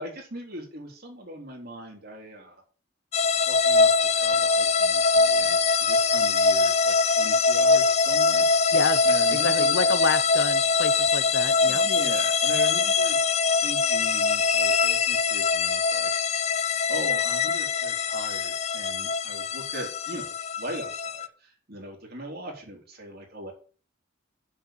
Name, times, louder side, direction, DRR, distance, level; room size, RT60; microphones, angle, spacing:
voice 1, 0.0-2.6 3.4-8.4 9.0-9.8 11.7-13.3 13.6-16.1 16.6-23.5, right 1 dB, 50° right, 1 dB, 3.5 m, -40 dB
sound 1, 3.1-21.3, left 4 dB, 30° left, 0.5 m, -23 dB
voice 2, 8.7-11.9, left 3 dB, 60° left, 13 dB, 1.0 m, -28 dB
7.0 x 6.9 x 7.5 m, 0.40 s
head